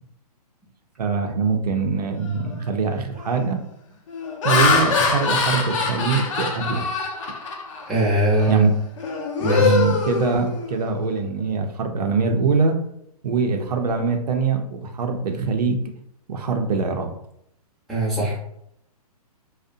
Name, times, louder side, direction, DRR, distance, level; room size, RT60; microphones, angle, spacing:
voice 1, 1.0-3.6 4.4-6.9 8.5-8.7 9.6-12.8 13.2-15.8 16.3-17.1, right 4 dB, 80° right, 4 dB, 0.5 m, -23 dB
Laughter, 2.3-2.6 3.2-3.5 4.1-7.9 8.3-8.6 9.0-10.9, left 4 dB, 50° left, 0.6 m, -23 dB
voice 2, 7.9-8.6 9.4-9.8 17.9-18.4, equal, ahead, -9 dB, 0.6 m, -21 dB
2.6 x 2.1 x 2.5 m, 0.74 s
hypercardioid pair, 150°, 20 cm